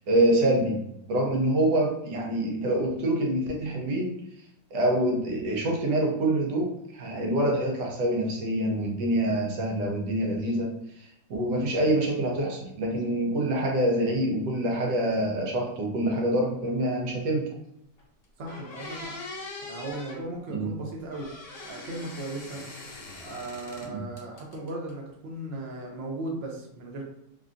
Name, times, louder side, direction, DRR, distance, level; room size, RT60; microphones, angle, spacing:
voice 1, 0.1-0.8 1.1-4.2 4.7-10.7 11.3-17.5 20.5-20.7 23.9-24.0, right 1 dB, 75° right, 0 dB, 1.3 m, -26 dB
sound 1, 18.0-18.1 18.5-20.2 21.1-23.9 24.2-24.9, left 2 dB, 65° left, 0.6 m, -42 dB
voice 2, 18.4-19.1 19.6-21.3 21.6-22.6 23.2-27.0, right 2 dB, 60° right, 0 dB, 0.6 m, -37 dB
3.5 x 2.3 x 2.5 m, 0.78 s
omnidirectional pair, 1.9 m